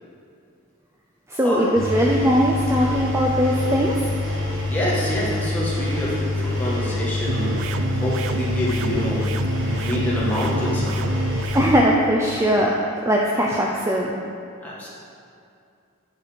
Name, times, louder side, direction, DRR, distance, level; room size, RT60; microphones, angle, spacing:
voice 1, 1.3-4.1 11.5-14.2, equal, 15° right, -2 dB, 0.4 m, -20 dB
Engine, 1.8-11.8, left 2 dB, 60° right, 1.5 m, -26 dB
voice 2, 4.7-9.2 9.8-11.2 14.6-14.9, left 1 dB, 10° left, -7 dB, 1.6 m, -27 dB
sound 1, 7.3-11.7, right 4 dB, 75° right, 0.4 m, -29 dB
9.5 x 4.7 x 5.1 m, 2.5 s
head